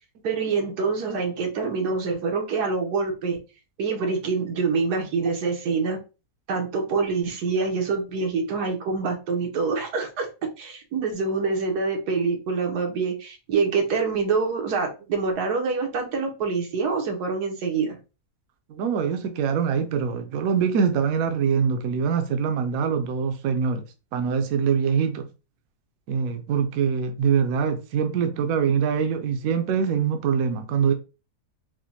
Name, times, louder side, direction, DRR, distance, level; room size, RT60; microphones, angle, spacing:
voice 1, 0.2-3.4 3.8-6.0 6.5-10.3 10.6-18.0, right 4 dB, 90° right, 1.5 m, -26 dB
voice 2, 18.7-23.8 24.1-25.3 26.1-30.9, right 6 dB, 70° right, 1.0 m, -24 dB
4.9 x 2.1 x 2.8 m
omnidirectional pair, 1.7 m